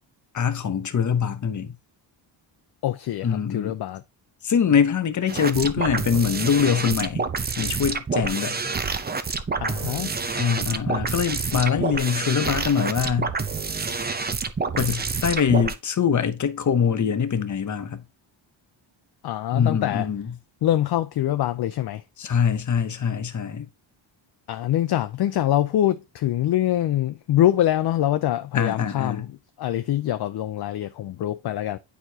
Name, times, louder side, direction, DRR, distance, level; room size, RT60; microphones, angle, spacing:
voice 1, 0.3-1.7 3.2-3.8 4.4-7.3 7.6-8.6 10.4-13.3 14.7-18.0 19.5-20.3 22.2-23.7 28.5-29.3, left 7 dB, 40° left, 0.8 m, -23 dB
voice 2, 2.8-4.0 9.6-10.1 19.2-20.1 20.6-22.0 24.5-29.3 29.6-31.8, left 12 dB, 55° left, 0.5 m, -24 dB
sound 1, 5.3-15.7, right 4 dB, 20° right, 0.6 m, -28 dB
9.2 x 4.6 x 2.8 m
cardioid pair, 120°, 48 cm